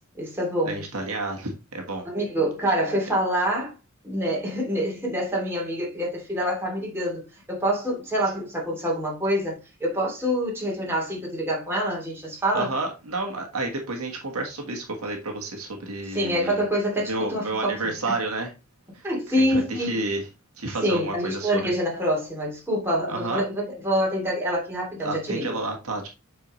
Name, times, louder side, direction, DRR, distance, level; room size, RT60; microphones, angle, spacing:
voice 1, 0.1-0.8 2.1-3.7 4.0-12.7 16.1-17.9 19.0-20.1 20.8-25.6, equal, 10° right, 2.7 m, -26 dB
voice 2, 0.6-2.1 12.5-16.6 17.1-18.5 18.9-19.0 19.4-20.3 20.6-21.7 23.1-23.4 25.0-26.1, right 2 dB, 70° right, 1.5 m, -30 dB
7.6 x 4.8 x 3.1 m
head